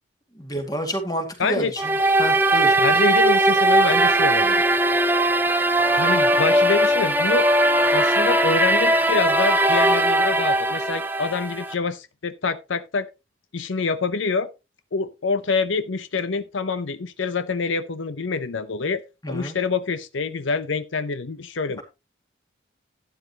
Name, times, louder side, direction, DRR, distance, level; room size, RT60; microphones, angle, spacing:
voice 1, 0.3-1.9 2.2-2.8 19.2-19.6, equal, 20° left, 2.1 m, -29 dB
voice 2, 1.4-1.7 2.8-4.6 6.0-7.5 7.9-13.1 13.5-14.5 14.9-21.8, left 4 dB, 80° left, 0.7 m, -26 dB
sound 1, 1.8-11.7, right 1 dB, 10° right, 0.7 m, -19 dB
12.0 x 9.6 x 2.9 m
head